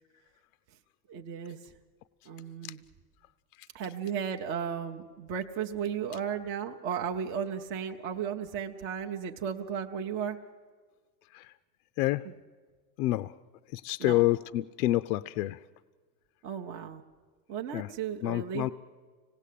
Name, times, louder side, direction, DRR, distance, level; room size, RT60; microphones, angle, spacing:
voice 1, 1.1-1.7 2.3-2.8 3.7-10.4 14.0-14.3 16.4-17.0 17.5-18.7, right 7 dB, 25° right, 3 dB, 0.6 m, -35 dB
voice 2, 13.0-13.3 13.7-15.6 17.7-17.9 18.2-18.7, left 16 dB, 70° left, 13 dB, 0.6 m, -28 dB
25.5 x 18.0 x 8.4 m, 1.5 s
supercardioid pair, 160°, 47 cm